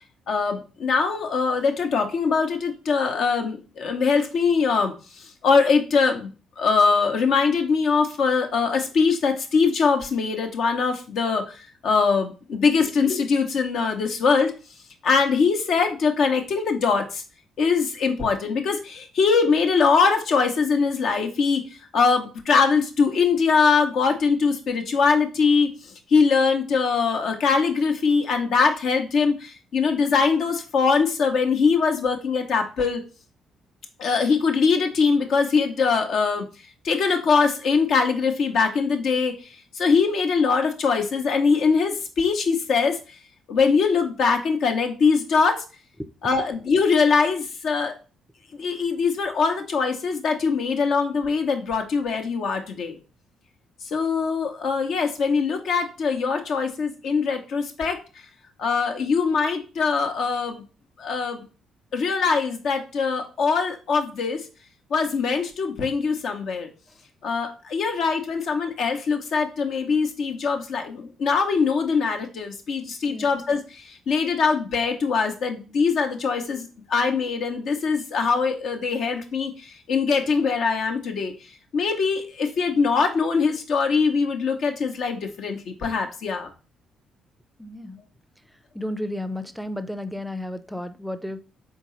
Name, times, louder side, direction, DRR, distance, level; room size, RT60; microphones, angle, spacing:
voice 1, 0.3-14.5 15.0-17.2 17.6-21.6 21.9-33.0 34.0-36.5 36.8-39.3 39.7-43.0 43.5-45.6 46.2-47.9 48.5-53.0 53.9-58.0 58.6-60.6 61.0-61.4 61.9-64.4 64.9-66.7 67.2-81.3 81.7-86.5, left 5 dB, 60° left, 0.7 m, -22 dB
voice 2, 87.6-88.0 88.7-91.4, left 1 dB, ahead, 0.5 m, -32 dB
4.5 x 3.7 x 3.1 m
hypercardioid pair, 45°, 0 cm